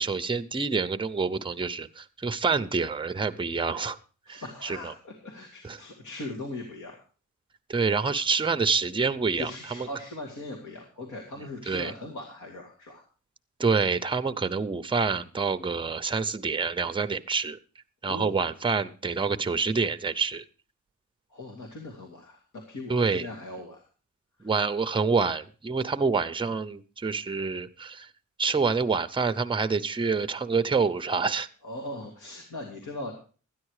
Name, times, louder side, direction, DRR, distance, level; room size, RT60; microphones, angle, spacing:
voice 1, 0.0-4.0 4.3-4.9 5.6-5.8 7.7-9.9 11.7-11.9 13.6-17.6 18.0-20.4 22.9-23.3 24.4-28.1 28.4-31.5, right 4 dB, 15° right, 10 dB, 0.6 m, -27 dB
voice 2, 4.3-7.0 9.4-13.0 18.0-18.4 21.3-23.8 24.4-24.5 31.6-33.1, left 2 dB, 70° left, 0 dB, 2.3 m, -39 dB
13.0 x 9.9 x 4.8 m, 0.38 s
wide cardioid pair, 115°, 31 cm